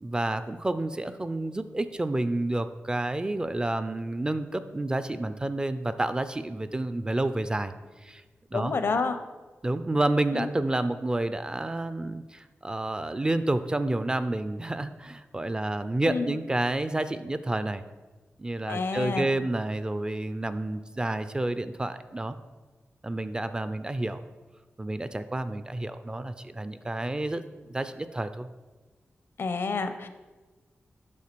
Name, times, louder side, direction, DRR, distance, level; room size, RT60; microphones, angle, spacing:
voice 1, 0.0-7.7 8.0-8.2 8.5-8.7 9.6-17.8 18.4-22.4 23.0-24.2 24.8-27.4 27.7-28.5, right 2 dB, 20° right, 11 dB, 0.4 m, -29 dB
voice 2, 8.5-9.2 10.3-10.5 16.0-16.3 18.7-19.3 29.4-30.1, left 4 dB, 60° left, 9 dB, 0.6 m, -29 dB
8.5 x 3.8 x 6.7 m, 1.3 s
wide cardioid pair, 105°, 4 cm